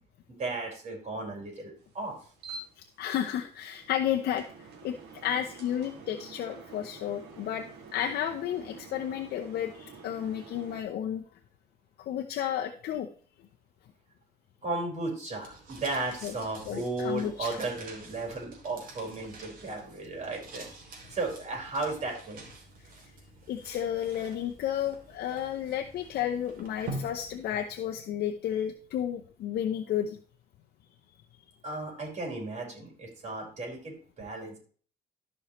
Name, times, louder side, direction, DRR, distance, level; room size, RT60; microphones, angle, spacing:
voice 1, 0.3-2.2 14.6-20.7 21.1-22.4 31.6-34.6, right 2 dB, 40° right, 0 dB, 4.6 m, -35 dB
sound 1, 1.8-10.8, right 4 dB, 75° right, 2.4 m, -48 dB
voice 2, 2.8-4.4 4.8-11.2 12.0-13.1 16.2-16.3 16.7-17.6 23.5-30.2, left 10 dB, 65° left, 4 dB, 0.8 m, -32 dB
sound 2, 15.4-28.0, right 2 dB, 55° right, 3.0 m, -47 dB
14.5 x 5.5 x 3.1 m, 0.43 s
cardioid pair, 110°, 17 cm